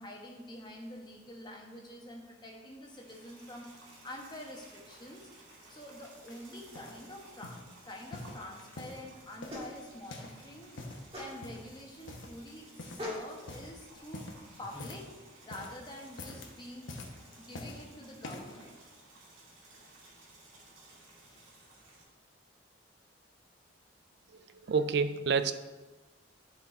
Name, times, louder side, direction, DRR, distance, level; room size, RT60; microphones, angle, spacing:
voice 1, 0.0-5.3 5.7-10.8 11.2-14.3 14.6-15.1 15.4-16.9 17.4-18.8, left 1 dB, 20° left, 0 dB, 1.1 m, -47 dB
sound 1, 2.7-22.0, right 2 dB, 85° right, 2.1 m, -57 dB
sound 2, 6.3-7.0 7.4-7.7 8.1-9.0 9.4-10.4 10.7-11.1 11.4-11.7 12.1-12.5 12.8-13.1 13.4-13.7 14.1-15.1 15.4-15.8 16.1-16.5 16.9-17.8 18.2-18.6 19.2-19.3, left 2 dB, 75° left, 1.1 m, -45 dB
sound 3, 9.0-15.0, left 1 dB, 30° right, 2.2 m, -46 dB
voice 2, 24.3-25.5, right 5 dB, 55° right, 11 dB, 0.4 m, -29 dB
10.5 x 4.3 x 4.3 m, 1.2 s
head